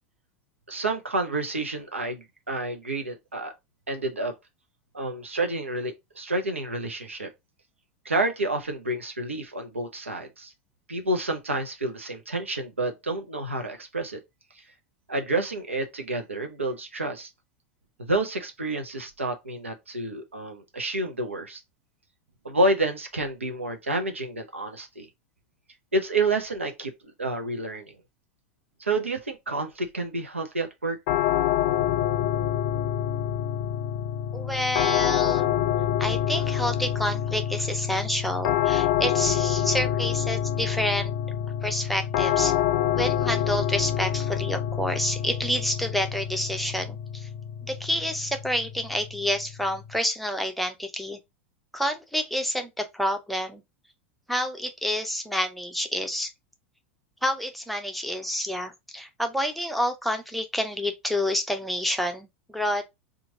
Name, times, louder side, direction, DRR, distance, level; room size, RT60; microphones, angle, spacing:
voice 1, 0.7-3.5 3.9-4.3 4.9-7.3 8.0-10.5 10.9-14.2 15.1-17.3 18.0-21.6 22.4-25.1 25.9-26.9 27.2-28.0 28.8-31.0, right 2 dB, 85° right, 0.7 m, -29 dB
sound 1, 31.1-50.0, left 10 dB, 45° left, 0.4 m, -27 dB
voice 2, 34.3-35.5 36.0-41.1 41.6-42.6 42.9-47.3 47.6-51.2 51.7-53.6 54.3-56.3 57.2-62.8, equal, ahead, 0.6 m, -28 dB
3.0 x 2.5 x 3.7 m
figure-of-eight pair, 90°, 7 cm